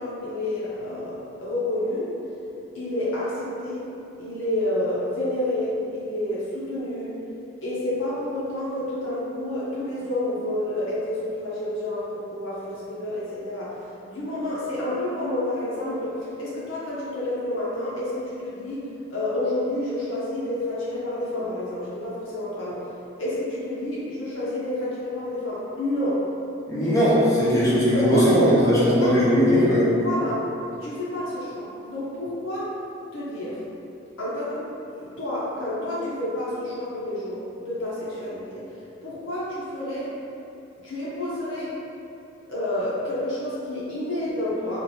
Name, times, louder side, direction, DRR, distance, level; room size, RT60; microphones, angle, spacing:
voice 1, 0.0-2.1 2.7-3.8 4.2-7.1 7.6-13.7 14.1-18.8 19.1-22.8 23.2-26.2 26.8-26.9 27.5-29.2 30.0-30.4 30.8-32.8 33.1-33.6 34.2-38.6 39.0-40.1 40.8-41.8 42.5-44.8, left 1 dB, 80° left, -8 dB, 0.7 m, -29 dB
voice 2, 26.7-29.9, equal, 15° left, -9 dB, 0.6 m, -19 dB
3.0 x 2.5 x 2.7 m, 2.8 s
head